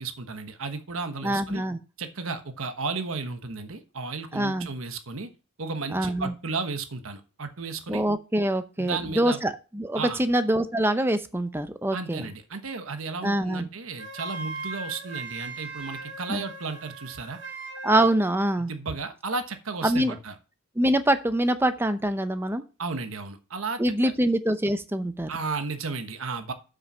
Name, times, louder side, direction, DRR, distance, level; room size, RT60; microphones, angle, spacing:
voice 1, 0.0-1.6 2.0-5.3 5.6-8.0 8.8-9.4 9.9-10.2 11.9-17.4 18.7-20.3 22.8-23.8 25.3-26.5, right 4 dB, 85° right, 8 dB, 1.2 m, -33 dB
voice 2, 1.2-1.8 4.3-4.7 5.9-6.3 7.9-12.3 13.2-13.7 16.3-16.4 17.8-18.7 19.8-20.1 20.8-22.6 23.8-25.3, right 1 dB, 10° right, 10 dB, 0.7 m, -24 dB
Wind instrument woodwind instrument, 14.0-18.2, right 3 dB, 60° right, 2.1 m, -38 dB
7.6 x 6.5 x 5.5 m, 0.33 s
head